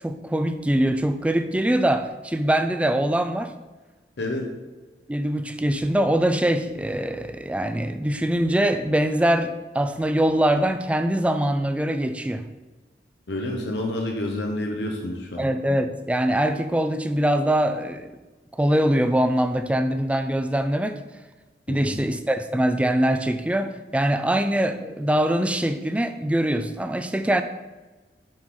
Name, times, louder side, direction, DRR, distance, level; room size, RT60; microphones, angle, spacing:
voice 1, 0.0-3.5 5.1-12.5 15.4-18.1 18.5-21.0 21.7-27.4, right 1 dB, 5° right, 8 dB, 0.3 m, -23 dB
voice 2, 4.2-4.5 13.3-15.5 21.7-21.9, left 1 dB, 75° left, 1 dB, 0.9 m, -29 dB
7.4 x 3.8 x 4.7 m, 1.2 s
head